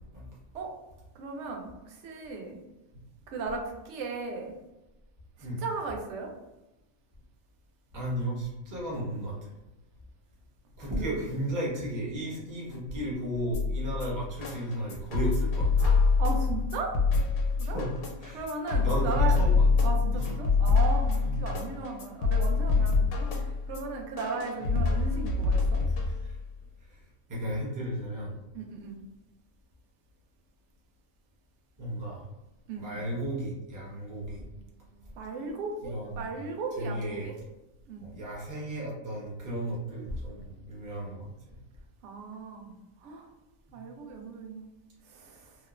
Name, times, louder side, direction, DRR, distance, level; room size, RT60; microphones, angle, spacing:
voice 1, 1.2-2.6 3.3-4.5 5.6-6.3 10.9-11.3 15.8-17.0 17.6-17.8 18.3-19.4 19.8-25.8 28.5-29.0 32.7-33.0 35.2-37.3 37.9-38.0 42.0-42.7 43.0-43.3 43.7-44.7 45.1-45.5, right 4 dB, 65° right, 2 dB, 0.8 m, -36 dB
voice 2, 7.9-9.5 10.8-15.7 17.6-17.9 18.2-18.5 18.8-20.3 21.2-21.5 26.0-26.4 26.9-27.0 27.3-28.3 31.8-32.2 32.8-35.2 35.8-36.3 36.7-37.3 38.0-41.3 43.7-43.8, right 1 dB, 20° right, -6 dB, 0.6 m, -34 dB
sound 1, 13.5-26.5, left 4 dB, 85° left, 1.1 m, -26 dB
2.9 x 2.0 x 2.4 m, 0.98 s
omnidirectional pair, 1.5 m